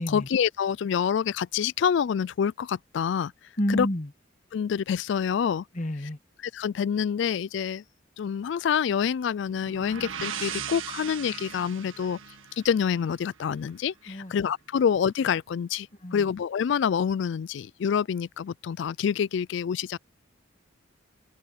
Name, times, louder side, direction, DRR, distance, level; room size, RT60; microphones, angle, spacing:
voice 1, 0.0-3.3 3.7-3.9 4.5-5.6 6.5-7.8 8.2-12.2 12.6-20.0, left 7 dB, 60° left, 0.3 m, -27 dB
voice 2, 3.6-4.1 5.7-6.2 14.1-14.5 16.0-16.3, left 1 dB, 40° left, 1.6 m, -30 dB
sound 1, 9.5-13.3, right 8 dB, 90° right, 1.7 m, -38 dB
head